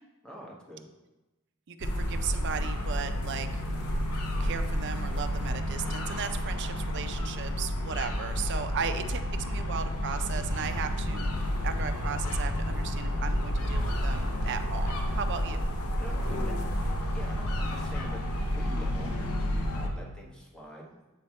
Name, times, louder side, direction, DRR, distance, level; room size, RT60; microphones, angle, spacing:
voice 1, 0.2-0.9 16.0-21.0, equal, 5° left, -3 dB, 0.9 m, -46 dB
voice 2, 1.7-3.6 4.4-11.3 11.6-15.7, right 6 dB, 55° right, 9 dB, 0.4 m, -36 dB
sound 1, 1.8-19.9, equal, 85° left, 0.8 m, -30 dB
7.4 x 3.3 x 4.1 m, 1.1 s
head